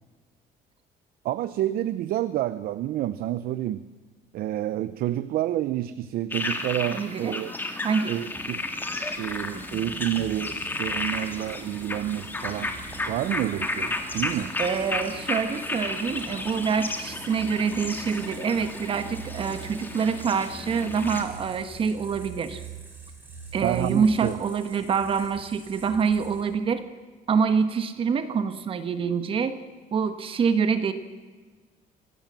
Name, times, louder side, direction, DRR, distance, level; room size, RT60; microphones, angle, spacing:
voice 1, 1.2-3.9 4.3-7.5 8.1-8.6 9.2-12.7 13.1-14.5 23.6-24.4, right 13 dB, 65° right, 14 dB, 0.7 m, -29 dB
sound 1, 6.3-21.2, left 2 dB, 10° left, 2.0 m, -33 dB
voice 2, 6.9-7.4 7.8-8.1 14.6-22.6 23.5-26.8 27.3-29.6 29.9-30.9, right 6 dB, 35° right, 10 dB, 1.3 m, -26 dB
sound 2, 8.3-26.7, right 5 dB, 10° right, 5.0 m, -45 dB
25.0 x 17.5 x 7.6 m, 1.4 s
cardioid pair, 180°, 16 cm